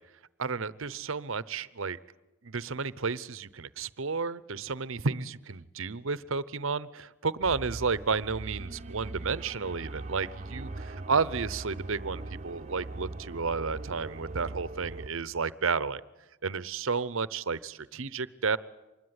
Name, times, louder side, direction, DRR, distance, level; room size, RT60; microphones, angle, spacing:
voice 1, 0.4-2.0 2.4-16.0 16.4-18.6, right 4 dB, 60° right, 18 dB, 0.8 m, -32 dB
sound 1, 7.4-15.1, right 2 dB, 30° right, 1.0 m, -41 dB
25.5 x 21.0 x 9.7 m, 1.0 s
head